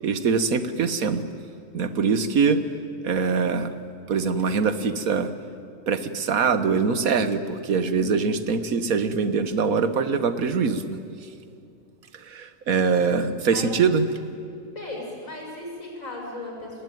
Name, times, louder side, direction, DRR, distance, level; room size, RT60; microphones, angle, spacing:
voice 1, 0.0-1.3 1.7-2.6 3.0-3.7 4.1-5.3 5.9-11.0 12.1-14.1, right 5 dB, 85° right, 11 dB, 1.7 m, -23 dB
voice 2, 13.5-13.8 14.8-16.8, left 2 dB, 70° left, 0 dB, 7.0 m, -36 dB
29.0 x 20.0 x 9.3 m, 2.5 s
omnidirectional pair, 1.4 m